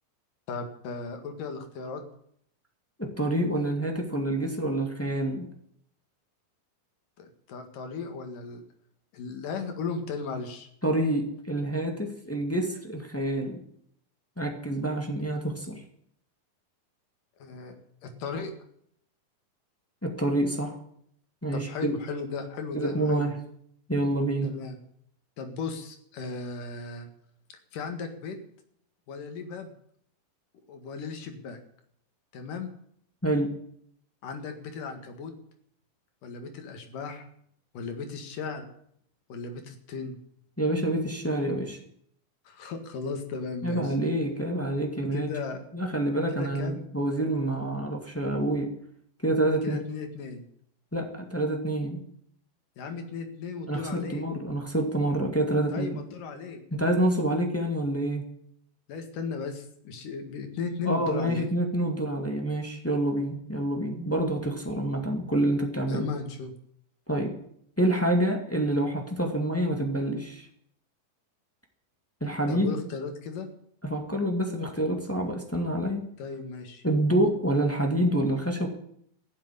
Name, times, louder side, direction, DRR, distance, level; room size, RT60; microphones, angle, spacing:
voice 1, 0.5-2.0 7.2-8.6 9.1-10.7 17.4-17.8 18.0-18.5 21.5-23.3 24.4-24.8 25.4-27.1 27.5-28.4 29.1-29.7 30.7-31.6 32.3-32.7 34.2-35.3 36.2-37.2 37.7-38.7 39.3-40.2 42.4-44.0 45.1-45.6 46.3-46.8 49.6-50.4 52.8-54.3 55.7-56.6 58.9-61.5 65.9-66.5 72.5-73.5 76.2-76.8, left 4 dB, 65° left, 6 dB, 3.4 m, -36 dB
voice 2, 3.0-5.5 10.8-13.6 14.4-15.8 20.0-20.7 21.4-21.9 22.7-23.3 23.9-24.5 33.2-33.5 40.6-41.8 43.6-45.3 45.7-48.7 49.2-49.8 50.9-52.0 53.7-56.0 56.7-58.2 60.8-66.1 67.1-67.3 67.8-70.5 72.2-72.8 73.8-76.0 76.8-78.7, right 1 dB, 10° left, 2 dB, 1.0 m, -27 dB
15.5 x 7.9 x 9.7 m, 0.69 s
omnidirectional pair, 4.2 m